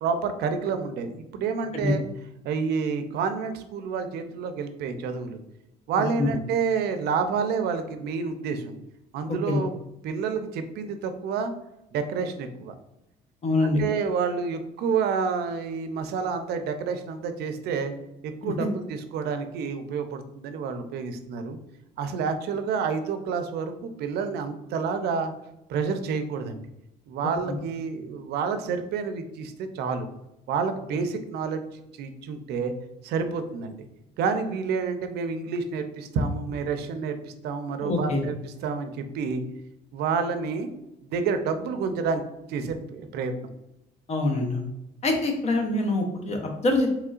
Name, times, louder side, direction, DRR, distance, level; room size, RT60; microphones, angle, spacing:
voice 1, 0.0-2.0 2.4-5.4 5.9-8.7 9.1-9.7 10.0-11.5 11.9-12.7 13.6-17.9 18.2-21.6 22.0-25.3 25.7-26.6 27.1-30.1 30.5-31.6 32.0-32.7 33.0-33.9 34.2-38.3 38.6-39.4 39.9-40.7 41.1-42.2 42.5-43.3, right 5 dB, 75° right, 8 dB, 0.5 m, -29 dB
voice 2, 9.3-9.6 13.4-13.8 18.4-18.7 37.8-38.2 44.1-44.6 45.0-46.9, left 2 dB, 40° left, 3 dB, 0.8 m, -25 dB
3.7 x 3.1 x 2.4 m, 0.88 s
cardioid pair, 110°, 17 cm